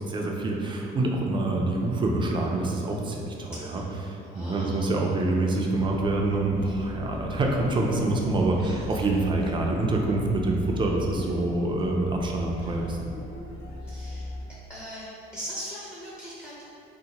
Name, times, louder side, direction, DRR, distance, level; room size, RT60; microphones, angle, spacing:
voice 1, 0.0-13.1, right 2 dB, 30° right, 0 dB, 0.4 m, -26 dB
voice 2, 3.5-3.8 4.3-4.9 8.6-8.8 13.8-16.6, equal, 15° left, -7 dB, 0.6 m, -40 dB
sound 1, 5.7-14.4, left 2 dB, 70° left, 0.9 m, -39 dB
2.8 x 2.1 x 3.9 m, 2.7 s
cardioid pair, 110°, 17 cm